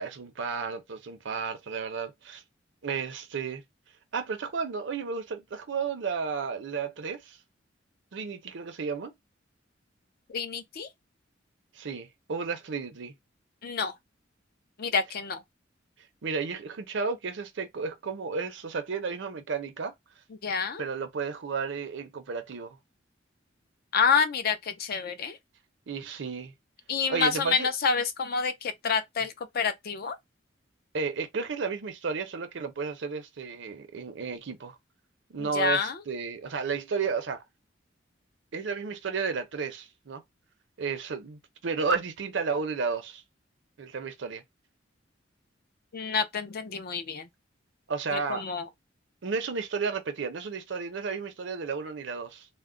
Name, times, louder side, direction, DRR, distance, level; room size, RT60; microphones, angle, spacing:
voice 1, 0.0-2.4 2.8-3.6 4.1-7.4 8.1-9.1 11.8-13.1 16.2-19.9 20.8-22.8 25.9-26.5 27.1-27.7 30.9-34.7 35.3-37.4 38.5-40.2 40.8-43.2 43.8-44.4 47.9-48.4 49.2-52.5, right 5 dB, 70° right, 0.6 m, -32 dB
voice 2, 10.3-10.9 13.6-13.9 14.8-15.4 20.3-20.8 23.9-25.4 26.9-30.2 35.4-36.0 45.9-47.3 48.1-48.7, left 5 dB, 55° left, 0.4 m, -28 dB
2.2 x 2.1 x 3.6 m
head